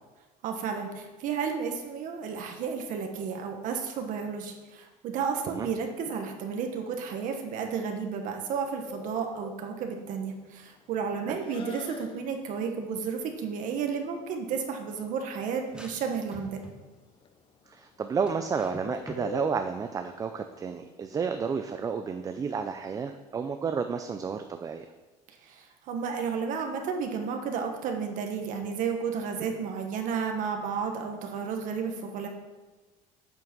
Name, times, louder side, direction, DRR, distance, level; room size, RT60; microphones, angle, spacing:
voice 1, 0.4-16.7 25.3-32.3, right 6 dB, 55° right, 4 dB, 1.2 m, -32 dB
Bird, 8.9-21.9, left 5 dB, 35° left, 0.7 m, -46 dB
sound 1, 15.7-16.9 18.3-19.3, equal, 5° right, 1.1 m, -45 dB
voice 2, 17.7-24.9, right 6 dB, 25° right, 7 dB, 0.4 m, -31 dB
9.1 x 6.2 x 6.0 m, 1.2 s
cardioid pair, 150°, 16 cm